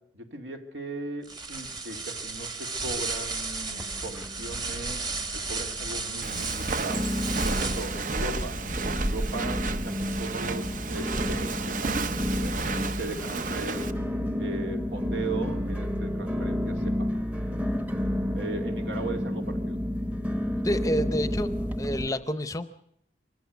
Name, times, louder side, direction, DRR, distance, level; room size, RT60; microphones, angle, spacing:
voice 1, 0.1-5.1 5.5-7.1 7.4-8.6 8.9-12.7 13.0-13.9 14.4-17.2 18.3-19.8, right 2 dB, 75° right, 4 dB, 2.5 m, -38 dB
sound 1, 1.2-8.1, right 3 dB, 25° right, 1.5 m, -34 dB
sound 2, 3.7-4.7 4.9-5.6 6.1-6.2 6.9-22.1, left 1 dB, 10° right, 1.0 m, -31 dB
Walk footsteps, 6.2-13.9, right 3 dB, 45° right, 0.8 m, -31 dB
voice 2, 20.6-22.7, equal, 20° left, 12 dB, 0.7 m, -29 dB
24.5 x 14.5 x 8.3 m, 0.73 s
head